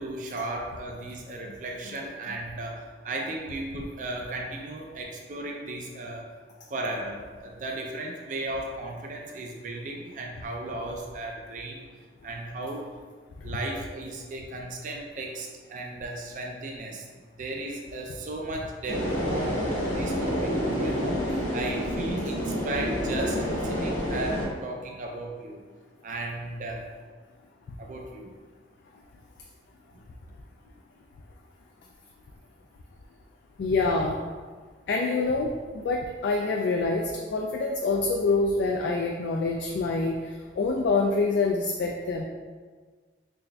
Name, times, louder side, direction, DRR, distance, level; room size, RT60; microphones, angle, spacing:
voice 1, 0.0-6.3 6.7-11.8 12.2-12.9 13.4-25.6 26.0-26.9 27.8-28.3, right 2 dB, 45° right, 1 dB, 0.4 m, -35 dB
sound 1, 18.9-24.5, equal, 45° left, 0.9 m, -28 dB
voice 2, 33.6-34.2 34.9-35.5 35.8-40.2 40.6-42.2, left 3 dB, 75° left, 0 dB, 0.3 m, -26 dB
4.0 x 3.4 x 2.2 m, 1.5 s
head